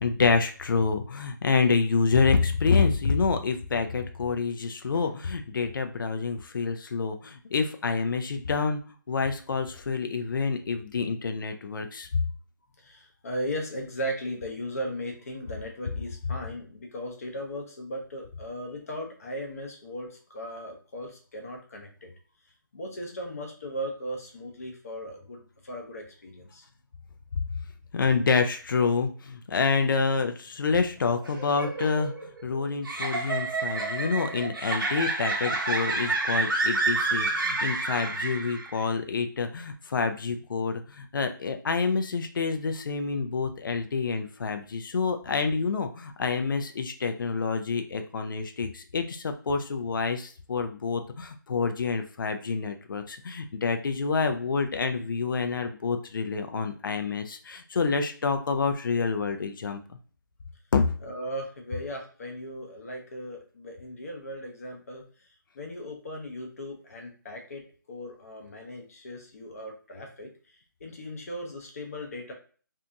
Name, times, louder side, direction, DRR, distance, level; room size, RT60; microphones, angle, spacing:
voice 1, 0.0-8.8 9.1-12.1 27.9-59.8 60.7-60.9, left 4 dB, 75° left, 6 dB, 0.4 m, -27 dB
voice 2, 12.8-22.1 22.7-26.6 61.0-65.0 65.5-67.6 67.9-70.3 70.8-72.3, equal, 45° left, 2 dB, 0.7 m, -37 dB
sound 1, 31.2-38.8, right 3 dB, 90° right, 0.9 m, -29 dB
2.6 x 2.3 x 2.5 m, 0.41 s
hypercardioid pair, 165°, 11 cm